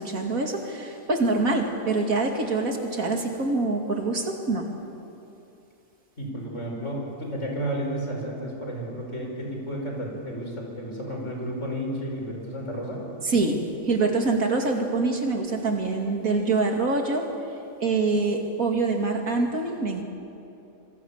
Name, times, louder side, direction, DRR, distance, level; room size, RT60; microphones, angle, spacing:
voice 1, 0.0-4.7 13.2-17.3 17.8-20.0, right 3 dB, 90° right, 2 dB, 2.9 m, -25 dB
voice 2, 6.2-13.0, right 1 dB, 60° left, 0 dB, 5.6 m, -32 dB
26.0 x 23.5 x 7.3 m, 2.7 s
omnidirectional pair, 1.4 m